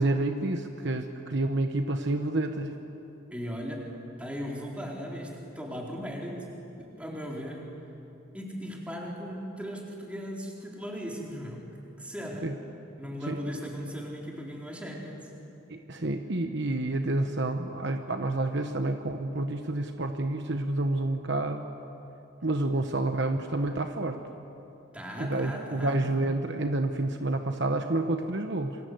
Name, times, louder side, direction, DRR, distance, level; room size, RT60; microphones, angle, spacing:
voice 1, 0.0-2.7 12.4-12.5 13.3-13.4 15.7-21.7 22.4-24.2 25.2-28.8, right 2 dB, 55° right, 6 dB, 1.1 m, -29 dB
voice 2, 3.3-3.9 4.2-6.5 6.7-7.7 8.3-11.7 12.0-12.5 13.0-15.3 24.9-26.0, equal, 5° right, -3 dB, 4.3 m, -37 dB
28.0 x 25.0 x 8.0 m, 2.9 s
head